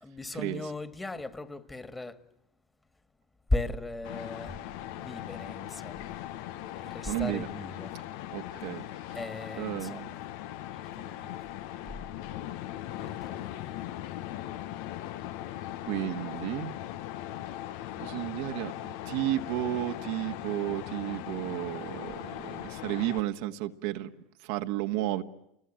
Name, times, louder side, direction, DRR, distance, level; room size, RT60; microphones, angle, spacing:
voice 1, 0.0-2.2 3.5-4.6 5.0-6.2 6.8-7.9 9.1-10.2 10.7-11.4 11.9-12.0 12.8-13.8, left 2 dB, 15° left, 2.1 m, -37 dB
sound 1, 4.0-23.2, left 13 dB, 70° left, 1.1 m, -39 dB
voice 2, 7.1-7.5 8.3-8.8 9.6-10.1 15.9-16.7 18.0-24.1 24.4-25.2, right 14 dB, 70° right, 1.6 m, -32 dB
29.0 x 22.0 x 9.0 m
hypercardioid pair, 90°, 0 cm